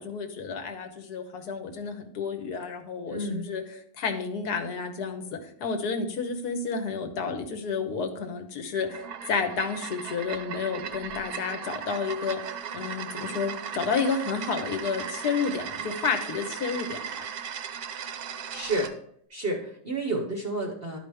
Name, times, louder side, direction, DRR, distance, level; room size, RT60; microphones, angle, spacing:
voice 1, 0.0-3.6 4.0-12.4 12.7-17.3, left 5 dB, 70° left, 6 dB, 1.4 m, -31 dB
voice 2, 3.1-3.5 18.5-18.9 19.3-21.0, right 2 dB, 45° right, 1 dB, 0.8 m, -30 dB
sound 1, 8.8-18.9, right 7 dB, 70° right, 1.2 m, -37 dB
11.5 x 4.9 x 3.4 m, 0.65 s
omnidirectional pair, 1.8 m